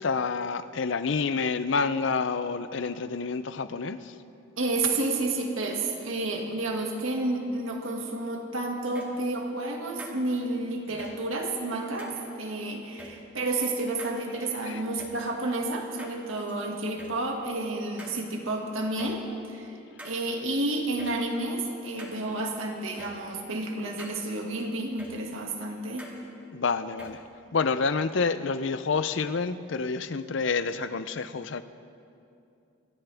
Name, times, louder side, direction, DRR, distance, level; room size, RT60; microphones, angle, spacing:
voice 1, 0.0-4.0 14.7-14.8 26.5-27.2 27.5-31.6, left 4 dB, 60° left, 12 dB, 0.5 m, -28 dB
voice 2, 4.6-19.2 19.5-19.8 20.0-26.1, right 2 dB, 75° right, 1 dB, 2.0 m, -30 dB
sound 1, 8.9-9.2 10.0-10.1 11.0-11.1 12.0-12.2 13.0-13.1 14.0-14.1 15.0-15.1 16.0-16.5 17.0-17.1 18.0-18.2 19.0-19.1 20.0-20.1 21.0-21.1 22.0-22.2 23.0-23.1 24.0-24.1 25.0-25.1 26.0-26.2 27.0-27.1, equal, 5° right, 2.1 m, -44 dB
25.0 x 14.0 x 3.5 m, 2.6 s
head